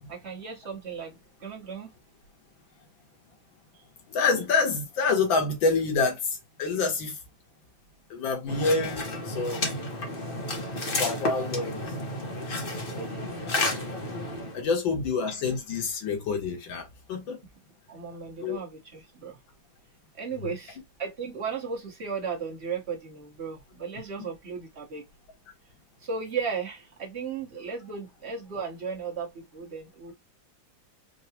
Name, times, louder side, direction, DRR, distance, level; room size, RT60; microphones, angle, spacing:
voice 1, 0.1-1.9 3.7-3.8 12.9-13.5 17.9-19.4 20.1-25.0 26.0-30.1, right 5 dB, 40° right, 1.3 m, -36 dB
voice 2, 4.1-7.2 8.1-9.7 10.9-11.9 14.5-17.4 18.4-18.6 20.3-20.5 24.2-24.3, left 4 dB, 70° left, 2.1 m, -27 dB
sound 1, 8.5-14.6, left 2 dB, 40° left, 0.8 m, -32 dB
4.7 x 2.3 x 2.8 m
omnidirectional pair, 2.2 m